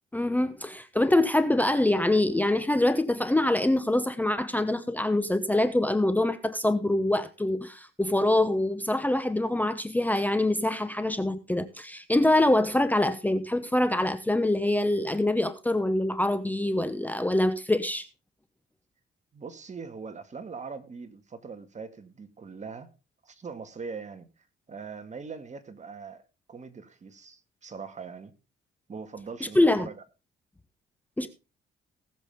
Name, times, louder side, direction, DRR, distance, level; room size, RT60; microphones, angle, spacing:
voice 1, 0.1-18.1 29.5-29.9 31.2-31.3, left 1 dB, 10° left, 0.9 m, -25 dB
voice 2, 19.3-22.9 23.2-26.2 26.5-28.3 28.9-29.9 31.2-31.3, right 5 dB, 35° right, 2.0 m, -41 dB
18.5 x 7.5 x 3.6 m
cardioid pair, 90°, 20 cm